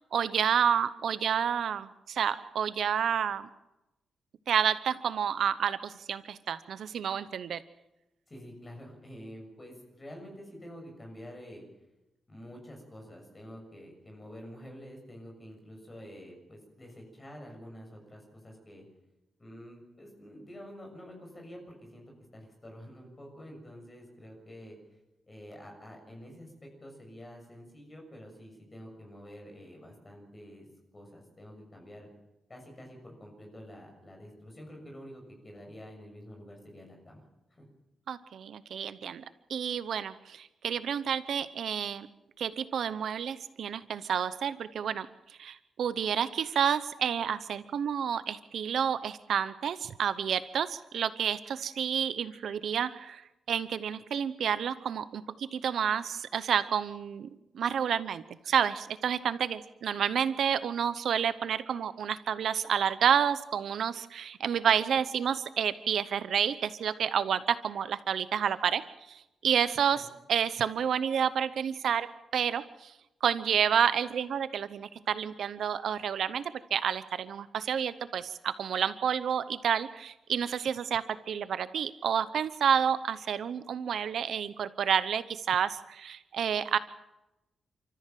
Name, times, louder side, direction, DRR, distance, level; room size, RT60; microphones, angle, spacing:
voice 1, 0.0-3.5 4.5-7.6 38.1-39.2 39.5-42.1 42.4-53.2 53.5-57.3 57.5-68.8 69.1-72.1 72.3-72.9 73.2-76.4 76.7-86.8, right 8 dB, 65° right, 13 dB, 0.8 m, -29 dB
voice 2, 8.3-11.6 12.3-18.8 19.4-22.0 22.3-24.8 25.3-30.7 30.9-32.1 32.5-37.2 37.5-37.6 69.9-70.1, equal, 20° left, 2 dB, 6.8 m, -48 dB
30.0 x 14.0 x 7.7 m, 0.95 s
wide cardioid pair, 175°, 0 cm